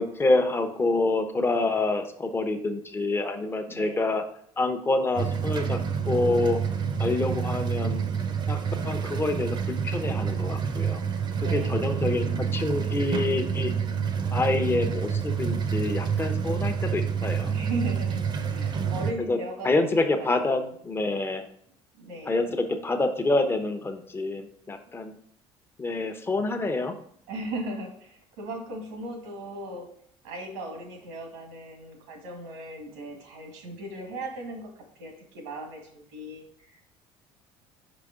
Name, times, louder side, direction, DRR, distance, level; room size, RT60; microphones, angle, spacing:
voice 1, 0.0-4.2 4.6-5.8 6.1-6.6 7.0-8.0 8.5-8.6 8.8-11.0 11.4-13.7 14.3-17.5 19.3-19.4 19.6-21.4 22.3-25.1 25.8-27.0, left 2 dB, 20° left, 6 dB, 0.9 m, -27 dB
voice 2, 3.7-4.2 11.3-12.1 17.4-20.7 22.0-22.5 27.3-29.9 30.2-36.8, right 1 dB, 90° right, 3 dB, 1.7 m, -38 dB
sound 1, 5.2-19.1, right 7 dB, 40° right, 0.8 m, -28 dB
5.3 x 5.0 x 3.7 m, 0.67 s
supercardioid pair, 95°, 12 cm